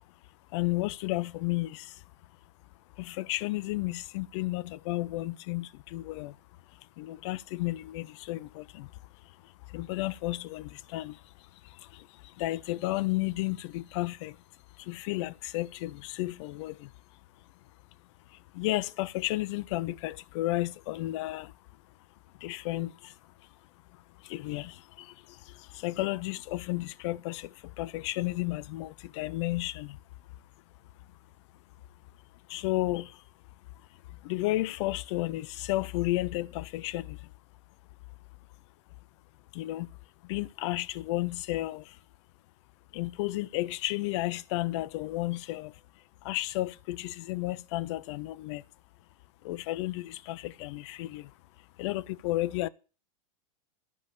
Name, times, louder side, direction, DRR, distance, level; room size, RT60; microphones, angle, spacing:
voice 1, 0.5-2.0 3.0-6.4 6.7-14.4 14.8-16.9 18.3-21.5 22.4-23.5 23.9-30.0 32.5-33.2 34.1-37.3 39.5-39.9 40.2-42.0 42.9-45.8 46.2-48.6 49.4-51.3 51.8-52.7, left 18 dB, 50° left, 0.6 m, -33 dB
13.5 x 5.2 x 8.4 m
figure-of-eight pair, 90°, 19 cm